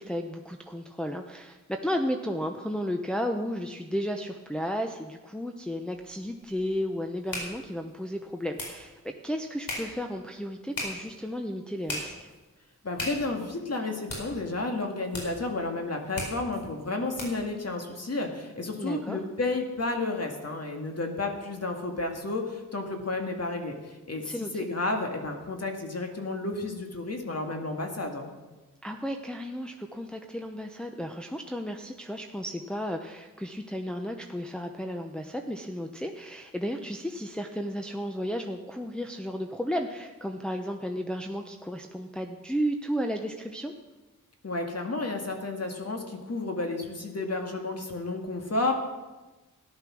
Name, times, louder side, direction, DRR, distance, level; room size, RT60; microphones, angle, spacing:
voice 1, 0.0-12.3 18.8-19.2 24.2-24.7 28.8-43.7, equal, 5° left, 3 dB, 0.8 m, -33 dB
sound 1, 5.9-17.5, left 1 dB, 80° left, 4.6 m, -40 dB
voice 2, 12.8-24.3 24.5-28.3 44.4-48.7, left 2 dB, 50° left, 3 dB, 2.0 m, -31 dB
14.0 x 11.0 x 6.2 m, 1.2 s
wide cardioid pair, 90°, 33 cm